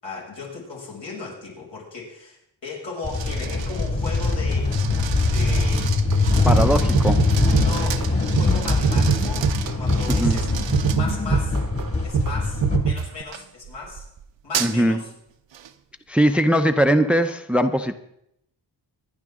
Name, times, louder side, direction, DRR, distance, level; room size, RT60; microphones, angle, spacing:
voice 1, 0.0-4.8 5.2-5.9 6.5-6.9 7.5-10.5 10.9-11.6 12.0-14.1 14.4-15.1, left 3 dB, 80° left, -3 dB, 6.5 m, -36 dB
sound 1, 3.0-12.8, left 3 dB, 30° left, 2.2 m, -22 dB
sound 2, 3.1-11.5 12.1-12.4 13.3-14.9 15.5-15.7, right 9 dB, 85° right, 0.9 m, -34 dB
sound 3, 6.1-6.2 6.5-6.7 6.9-8.1 8.4-8.6 8.8-10.0 10.2-10.5 10.7-11.9 12.1-12.4 12.6-13.2, right 6 dB, 50° right, 0.9 m, -23 dB
voice 2, 6.4-7.2 10.1-10.4 14.6-15.0 16.1-18.0, equal, 5° right, 9 dB, 0.6 m, -20 dB
26.5 x 10.5 x 3.7 m, 0.77 s
wide cardioid pair, 135°, 43 cm